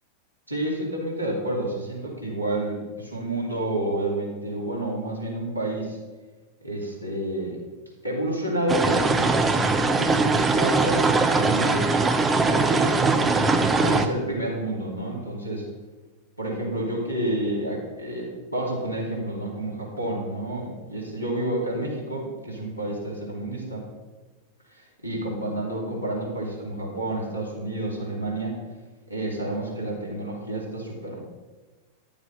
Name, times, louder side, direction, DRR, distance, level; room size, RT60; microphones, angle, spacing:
voice 1, 0.5-6.0 6.6-7.6 8.0-11.9 12.4-15.6 16.4-23.8 24.7-28.5 29.1-31.2, right 1 dB, 90° left, -2 dB, 2.9 m, -30 dB
sound 1, 8.7-14.1, right 3 dB, 15° right, 0.8 m, -21 dB
10.5 x 7.1 x 5.5 m, 1.2 s
figure-of-eight pair, 90°, 0 cm